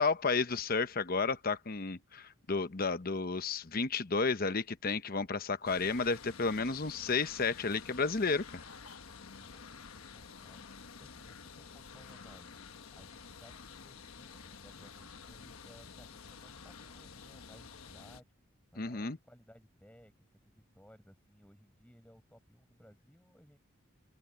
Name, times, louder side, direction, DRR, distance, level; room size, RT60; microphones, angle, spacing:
voice 1, 0.0-8.6 18.8-19.2, left 4 dB, 45° left, 0.9 m, -32 dB
sound 1, 5.6-18.2, left 5 dB, 85° left, 1.2 m, -50 dB
voice 2, 9.4-10.7 11.0-12.6 12.9-23.6, equal, 5° left, 7.8 m, -60 dB
open air
head